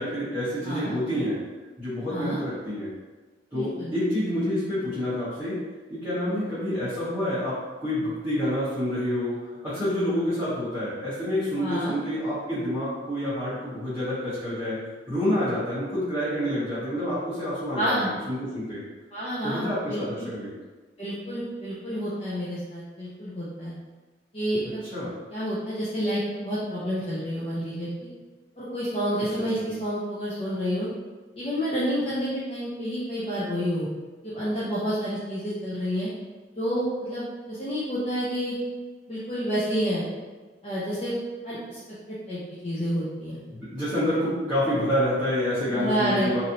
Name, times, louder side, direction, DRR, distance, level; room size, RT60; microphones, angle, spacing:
voice 1, 0.0-1.4 1.8-2.9 3.5-5.6 5.9-14.8 15.1-18.8 19.4-20.5 24.9-25.1 29.6-29.7 43.5-46.4, equal, 10° right, -17 dB, 1.1 m, -28 dB
voice 2, 2.1-2.4 3.5-3.9 11.6-11.9 17.7-18.1 19.1-20.3 21.0-23.7 24.3-24.8 25.3-27.9 28.6-30.9 31.4-33.9 34.2-36.1 36.6-38.5 39.1-40.1 40.6-41.1 41.4-41.8 42.1-43.4 45.7-46.4, equal, 35° left, -10 dB, 0.6 m, -29 dB
3.1 x 2.7 x 2.7 m, 1.3 s
head